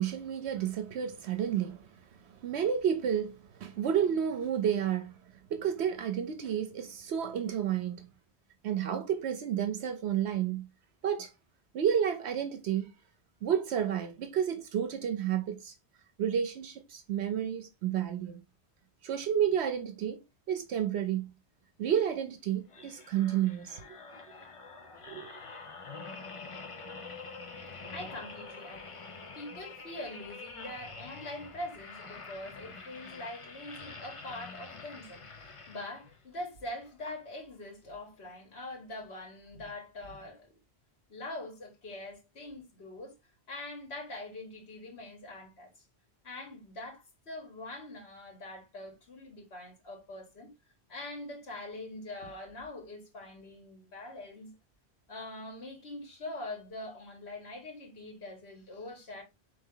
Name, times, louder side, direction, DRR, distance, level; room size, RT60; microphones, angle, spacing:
voice 1, 0.0-1.9 2.4-5.1 5.5-8.1 8.6-10.7 11.0-11.3 11.7-12.9 13.4-15.7 16.2-18.4 19.0-20.2 20.5-21.3 21.8-23.9 25.1-25.3, right 9 dB, 80° right, 0.9 m, -31 dB
sound 1, 22.7-36.3 36.8-37.0, left 4 dB, 35° left, 0.7 m, -46 dB
voice 2, 27.9-29.0 29.3-40.5 41.1-43.2 43.5-45.7 46.2-50.5 50.9-54.5 55.1-59.2, left 1 dB, 70° left, 1.8 m, -43 dB
4.4 x 3.3 x 3.7 m
omnidirectional pair, 1.1 m